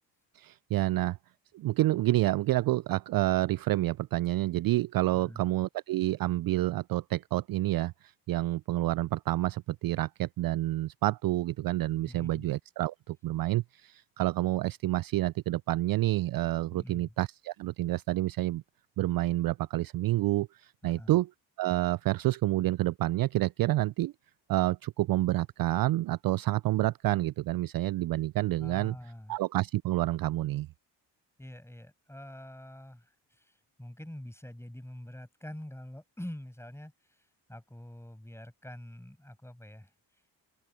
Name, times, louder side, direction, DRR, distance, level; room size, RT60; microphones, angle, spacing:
voice 1, 0.3-1.2 1.5-18.6 19.0-21.3 21.6-24.1 24.5-28.9 29.3-30.7, right 16 dB, 45° right, 0.5 m, -28 dB
voice 2, 5.1-5.5 12.1-12.5 16.7-17.1 20.8-21.2 28.6-29.4 31.4-39.9, left 1 dB, 5° left, 7.9 m, -46 dB
hypercardioid pair, 50°, 50 cm